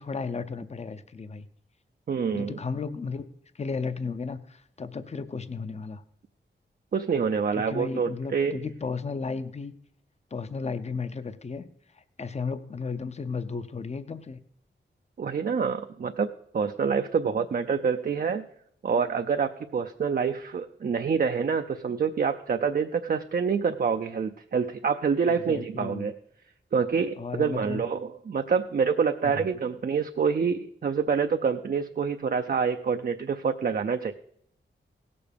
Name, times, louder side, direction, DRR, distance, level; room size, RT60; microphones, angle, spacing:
voice 1, 0.0-1.5 2.3-3.2 3.5-6.0 7.7-9.7 10.3-11.7 11.9-14.4 25.2-26.1 27.2-27.8 29.2-29.4, left 4 dB, 35° left, 12 dB, 0.6 m, -34 dB
voice 2, 2.1-2.6 6.9-8.6 15.2-16.3 16.5-18.4 18.8-26.1 26.7-34.1, right 6 dB, 50° right, 6 dB, 0.5 m, -27 dB
17.0 x 6.9 x 5.2 m, 0.69 s
wide cardioid pair, 110°, 19 cm